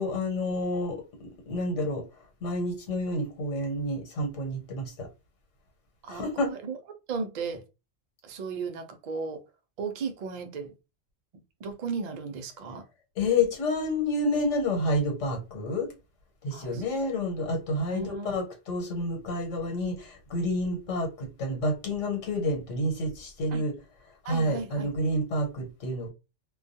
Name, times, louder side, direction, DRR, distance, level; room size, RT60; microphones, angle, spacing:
voice 1, 0.0-2.0 2.4-5.1 6.1-6.5 13.2-15.9 16.4-23.7 24.2-26.1, left 1 dB, 85° left, 1.2 m, -29 dB
voice 2, 6.0-6.8 7.1-7.6 8.2-9.4 9.8-10.7 11.6-12.9 16.5-16.8 17.9-18.3 23.5-23.6 24.2-24.9, right 5 dB, 65° right, 0.4 m, -35 dB
2.3 x 2.2 x 2.6 m
omnidirectional pair, 1.2 m